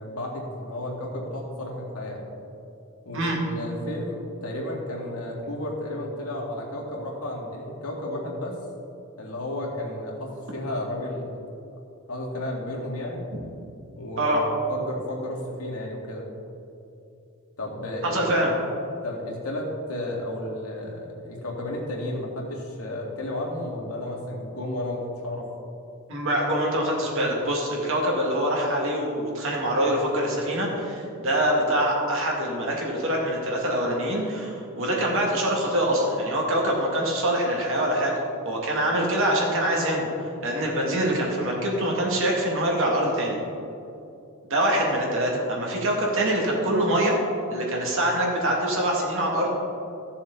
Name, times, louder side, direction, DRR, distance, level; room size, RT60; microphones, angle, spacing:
voice 1, 0.0-2.2 3.1-8.6 9.2-11.3 12.1-13.2 14.0-14.4 14.7-16.3 17.6-18.3 19.0-25.5, left 1 dB, 80° left, -2 dB, 2.1 m, -32 dB
voice 2, 18.0-18.5 26.1-38.1 38.4-40.1 40.4-43.4 44.5-47.1 47.5-49.5, right 1 dB, 60° right, -2 dB, 2.3 m, -24 dB
15.0 x 7.0 x 4.0 m, 2.7 s
head